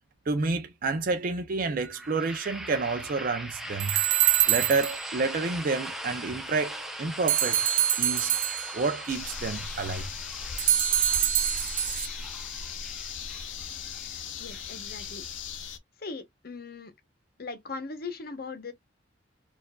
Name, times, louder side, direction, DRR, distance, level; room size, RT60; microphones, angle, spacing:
voice 1, 0.3-4.0 4.5-7.7 8.0-8.4 8.7-10.1, right 3 dB, 50° right, 0.5 m, -29 dB
sound 1, 1.9-15.7, right 1 dB, ahead, 0.6 m, -41 dB
sound 2, 3.8-5.1 7.3-8.9 10.6-12.1, right 12 dB, 75° right, 0.8 m, -25 dB
sound 3, 9.1-15.8, left 6 dB, 90° left, 0.6 m, -38 dB
voice 2, 14.4-15.2 16.0-16.9 17.4-18.7, left 4 dB, 55° left, 0.8 m, -39 dB
4.4 x 2.5 x 2.2 m
head